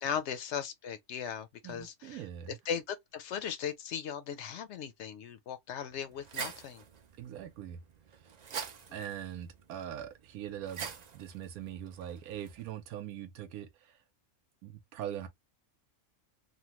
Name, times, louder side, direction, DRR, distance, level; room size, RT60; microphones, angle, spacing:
voice 1, 0.0-2.2 2.7-6.8, left 8 dB, 65° left, 0.7 m, -38 dB
voice 2, 1.6-2.6 7.2-7.8 8.9-14.0 14.6-15.3, right 10 dB, 85° right, 1.1 m, -42 dB
sound 1, 5.9-12.7, right 7 dB, 70° right, 0.4 m, -46 dB
3.1 x 2.2 x 2.8 m
omnidirectional pair, 1.5 m